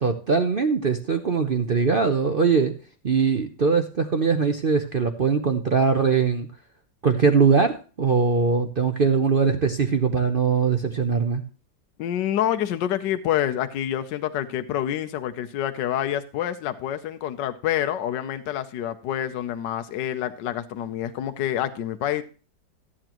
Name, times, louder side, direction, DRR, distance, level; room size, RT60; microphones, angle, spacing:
voice 1, 0.0-2.7 3.0-6.5 7.0-11.4, right 5 dB, 65° right, 6 dB, 0.5 m, -21 dB
voice 2, 12.0-22.2, left 11 dB, 70° left, 8 dB, 1.3 m, -27 dB
14.0 x 8.8 x 3.0 m, 0.37 s
omnidirectional pair, 2.0 m